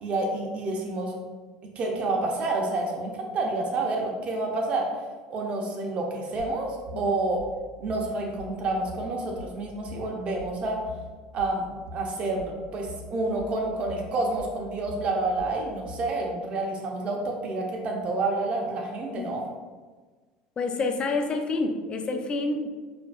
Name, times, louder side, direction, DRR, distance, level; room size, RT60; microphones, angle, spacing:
voice 1, 0.0-1.2 1.8-4.9 5.3-7.4 7.8-10.8 11.3-11.7 11.9-19.4, right 2 dB, 45° right, 0 dB, 0.8 m, -29 dB
sound 1, 6.4-16.2, left 2 dB, 85° right, 0.7 m, -43 dB
voice 2, 20.6-22.7, left 3 dB, 35° left, 5 dB, 0.5 m, -28 dB
4.5 x 2.7 x 2.3 m, 1.4 s
hypercardioid pair, 85°, 3 cm